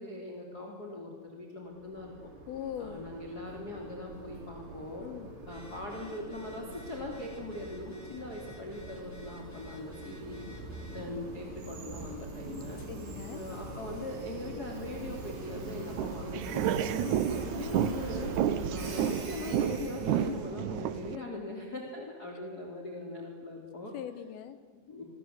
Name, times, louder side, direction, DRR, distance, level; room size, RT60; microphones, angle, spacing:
voice 1, 0.0-2.1 2.8-5.0 5.4-10.4 10.9-12.8 13.3-16.8 17.3-18.3 18.7-23.9 24.7-25.1, left 2 dB, 25° left, 1 dB, 3.4 m, -41 dB
Train, 1.7-20.5, right 3 dB, 85° right, 6.1 m, -43 dB
voice 2, 2.5-3.1 5.0-5.3 12.9-13.4 17.0-17.3 21.2-21.3 22.0-22.1 23.9-24.6, left 10 dB, 75° left, 11 dB, 2.8 m, -41 dB
Telephone, 5.4-11.1, left 3 dB, 5° left, 3.5 m, -55 dB
sound 1, 15.9-21.2, right 9 dB, 70° right, 1.9 m, -31 dB
29.5 x 22.5 x 8.3 m, 1.5 s
omnidirectional pair, 4.6 m